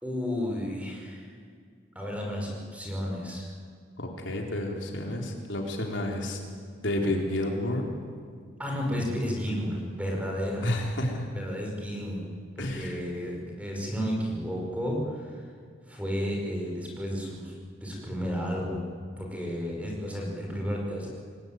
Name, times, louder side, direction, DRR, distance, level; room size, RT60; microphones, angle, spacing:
voice 1, 0.0-1.4 2.0-3.5 8.6-10.7 11.3-12.2 12.6-15.5 15.9-17.5 17.8-18.9 19.2-21.1, equal, 5° right, -1 dB, 5.4 m, -32 dB
voice 2, 4.0-6.4 6.8-7.9 10.6-11.3 12.6-13.0, left 1 dB, 65° left, 1 dB, 4.0 m, -30 dB
27.5 x 20.0 x 9.3 m, 2.1 s
head